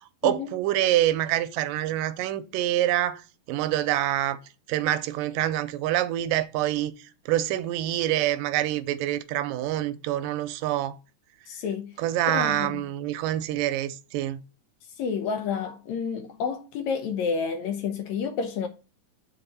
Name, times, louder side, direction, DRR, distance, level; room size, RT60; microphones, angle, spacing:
voice 1, 0.2-3.2 3.5-4.4 4.7-6.9 7.3-11.0 12.0-14.4, right 13 dB, 90° right, 2.3 m, -26 dB
voice 2, 11.5-12.0 12.3-12.8 15.0-18.7, left 6 dB, 70° left, 1.8 m, -30 dB
6.9 x 4.2 x 5.3 m
omnidirectional pair, 3.8 m